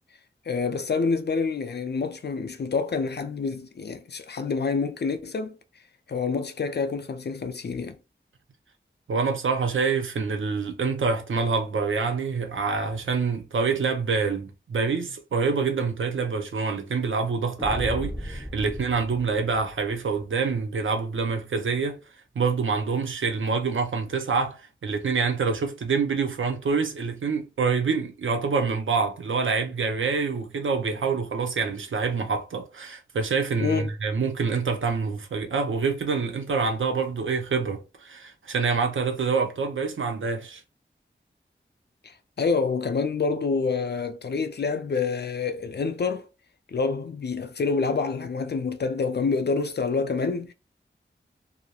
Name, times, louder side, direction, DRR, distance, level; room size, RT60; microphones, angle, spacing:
voice 1, 0.5-5.6 6.1-8.0 33.6-33.9 42.0-46.3 46.7-50.5, left 4 dB, 60° left, 0.4 m, -27 dB
voice 2, 9.1-22.0 22.4-40.6, right 5 dB, 90° right, 0.5 m, -26 dB
sound 1, 17.6-20.2, equal, ahead, 0.8 m, -36 dB
2.3 x 2.0 x 2.8 m
wide cardioid pair, 55°, 20 cm